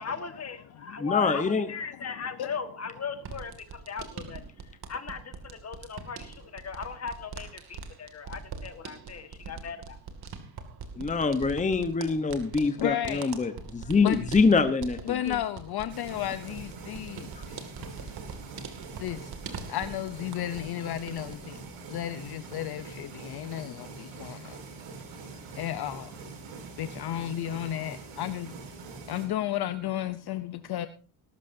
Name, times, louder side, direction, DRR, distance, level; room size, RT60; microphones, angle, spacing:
voice 1, 0.0-10.0, left 6 dB, 30° left, 1.7 m, -38 dB
voice 2, 1.0-1.7 11.0-15.4, left 4 dB, 15° left, 1.0 m, -25 dB
sound 1, 3.2-20.7 21.0-21.7, right 5 dB, 50° right, 2.5 m, -43 dB
voice 3, 12.8-13.3 14.0-14.2 15.0-18.3 19.0-19.3 19.7-21.6 21.9-24.6 25.5-26.2 26.8-28.5 29.0-30.9, left 12 dB, 50° left, 0.8 m, -33 dB
sound 2, 15.9-29.3, right 4 dB, 85° right, 6.4 m, -44 dB
20.0 x 12.5 x 2.7 m
cardioid pair, 125°, 48 cm